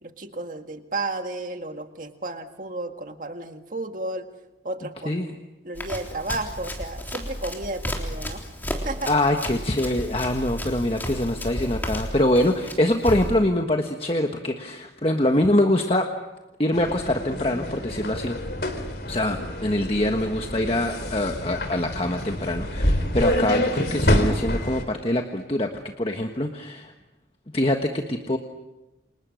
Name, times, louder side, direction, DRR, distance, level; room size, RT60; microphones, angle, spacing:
voice 1, 0.0-4.3 4.6-5.4 5.6-8.4 8.8-9.1, right 2 dB, 45° right, 6 dB, 1.9 m, -33 dB
Run, 5.8-13.4, equal, 10° left, 3.6 m, -33 dB
voice 2, 9.1-16.1 16.6-18.4 19.1-25.7 26.0-26.9 27.5-28.4, left 1 dB, 30° left, 4 dB, 1.5 m, -24 dB
sound 1, 16.7-24.8, left 1 dB, 60° left, 3.4 m, -27 dB
29.0 x 27.5 x 6.5 m, 1.0 s
head